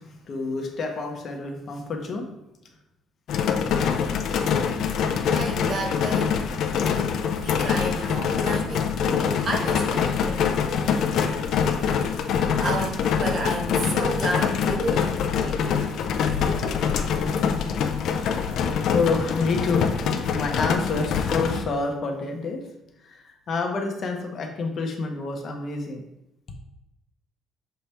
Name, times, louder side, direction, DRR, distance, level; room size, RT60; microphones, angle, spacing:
voice 1, 0.0-2.3 18.1-19.9 20.3-22.6 23.0-26.0, left 4 dB, 40° left, 3 dB, 0.9 m, -28 dB
sound 1, 3.3-21.6, left 6 dB, 60° left, 0.5 m, -24 dB
voice 2, 5.3-6.4 7.4-10.4 12.6-15.9 16.4-16.9, right 2 dB, 35° right, 2 dB, 0.9 m, -32 dB
6.5 x 3.5 x 4.2 m, 0.88 s
cardioid pair, 155°, 0 cm